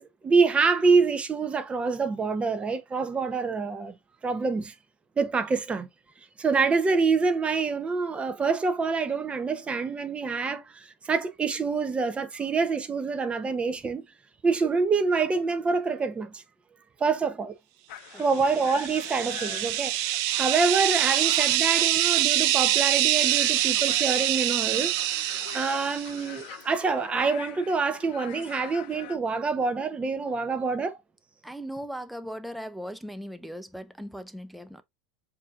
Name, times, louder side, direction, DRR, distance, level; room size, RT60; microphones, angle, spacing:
voice 1, 0.0-3.9 4.2-4.7 5.2-5.9 6.4-14.0 14.4-16.4 17.0-17.5 18.2-20.0 20.4-31.0, right 4 dB, 20° right, 0.8 m, -26 dB
sound 1, 17.9-29.2, left 12 dB, 70° left, 0.6 m, -44 dB
sound 2, 18.5-26.3, right 14 dB, 60° right, 0.5 m, -25 dB
voice 2, 31.4-34.8, equal, ahead, 0.5 m, -38 dB
7.2 x 2.8 x 2.4 m
supercardioid pair, 110°, 6 cm